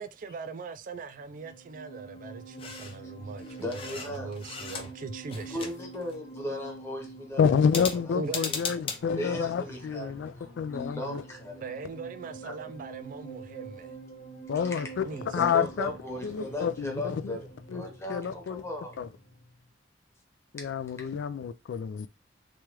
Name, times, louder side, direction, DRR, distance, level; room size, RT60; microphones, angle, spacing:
voice 1, 0.0-5.7 8.1-8.9 11.6-14.0 15.0-15.4, right 4 dB, 45° right, 0.3 m, -40 dB
sound 1, 1.2-19.6, right 2 dB, 60° left, 0.9 m, -46 dB
sound 2, 2.6-3.0 3.4-5.0 5.3-6.2 7.6-9.0, left 5 dB, 30° left, 0.6 m, -37 dB
voice 2, 3.4-4.3 5.5-8.2 8.4-8.5 9.2-11.6 12.4-12.5 14.7-14.8 15.2-19.0 20.6-20.7 21.0-21.1, left 1 dB, 15° left, 0.9 m, -37 dB
voice 3, 7.4-11.2 14.5-15.1 15.3-15.9 16.2-17.4 17.7-17.8 18.1-18.6 19.0-19.1 20.5-22.1, left 7 dB, 85° left, 0.3 m, -28 dB
3.1 x 2.3 x 3.0 m
head